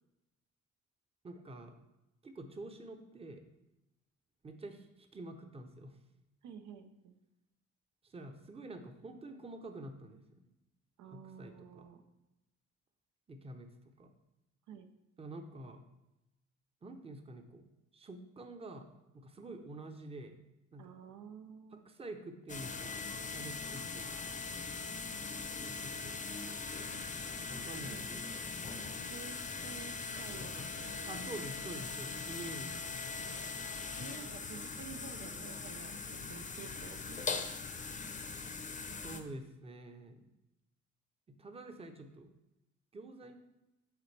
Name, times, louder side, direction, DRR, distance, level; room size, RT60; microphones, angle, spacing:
voice 1, 1.2-1.8 2.2-3.4 4.4-6.0 8.0-10.3 11.1-11.9 13.3-13.7 14.0-14.1 15.2-15.8 16.8-17.7 17.9-18.9 19.1-20.4 20.7-20.9 21.9-24.5 25.6-26.2 27.5-28.5 31.1-32.9 39.0-40.3 41.3-42.3 42.9-43.4, right 2 dB, 20° right, 6 dB, 0.7 m, -48 dB
voice 2, 6.4-7.2 11.0-12.0 14.7-14.9 20.8-21.8 27.8-28.1 29.0-31.3 32.7-32.8 34.0-37.8, right 6 dB, 80° right, 7 dB, 0.6 m, -51 dB
sound 1, 22.5-39.2, left 4 dB, 25° left, 0.6 m, -41 dB
8.1 x 3.9 x 3.3 m, 0.96 s
cardioid pair, 90°, 30 cm